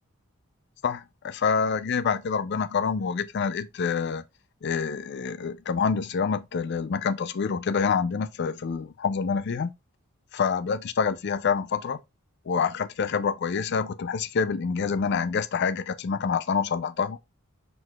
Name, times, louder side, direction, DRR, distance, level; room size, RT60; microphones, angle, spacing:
voice 1, 0.8-4.2 4.6-9.7 10.3-12.0 12.5-17.2, left 6 dB, 50° left, 0.4 m, -27 dB
4.6 x 3.9 x 2.3 m
head